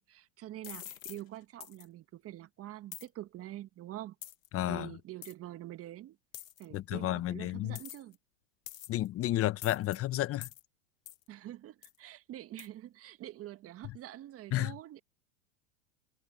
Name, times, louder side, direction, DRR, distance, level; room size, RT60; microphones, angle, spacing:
voice 1, 0.0-4.2 4.7-6.2 6.6-8.2 11.3-15.0, right 14 dB, 35° right, 1.7 m, -46 dB
sound 1, 0.6-1.2 1.6-1.8 2.9-3.1 4.2-4.5 5.2-5.3 6.3-6.6 7.7-8.1 8.7-9.1 9.6-10.0 10.4-10.6 11.1-11.2 11.8-12.0 12.6-12.7, left 13 dB, 80° left, 1.9 m, -46 dB
voice 2, 4.5-5.0 6.7-7.8 8.9-10.5 14.5-14.7, left 14 dB, 35° left, 1.4 m, -31 dB
hypercardioid pair, 105°, 39 cm